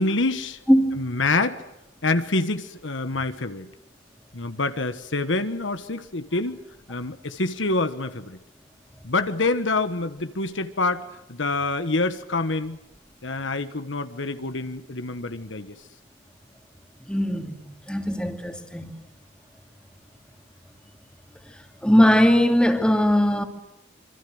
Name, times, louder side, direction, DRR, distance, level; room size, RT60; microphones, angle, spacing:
voice 1, 0.0-0.6 0.9-1.6 2.0-3.7 4.3-6.6 6.9-8.4 9.0-11.0 11.3-12.8 13.2-15.7, left 3 dB, 70° left, 1.5 m, -26 dB
voice 2, 0.7-1.1 17.1-17.6 17.9-18.9 21.8-23.4, equal, 5° left, 2.7 m, -19 dB
27.0 x 25.5 x 7.9 m
head